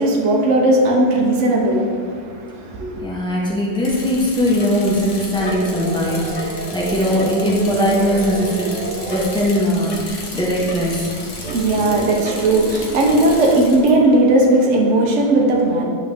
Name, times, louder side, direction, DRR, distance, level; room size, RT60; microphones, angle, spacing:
voice 1, 0.0-3.0 11.4-15.8, right 1 dB, 65° right, -1 dB, 0.7 m, -17 dB
voice 2, 3.0-8.7 9.1-11.1, equal, 5° left, -6 dB, 0.4 m, -20 dB
Bicycle, 3.8-13.9, left 2 dB, 50° left, 1.0 m, -33 dB
sound 1, 5.4-9.6 11.4-13.8, right 2 dB, 85° right, 1.7 m, -29 dB
10.5 x 3.9 x 3.4 m, 2.1 s
omnidirectional pair, 2.3 m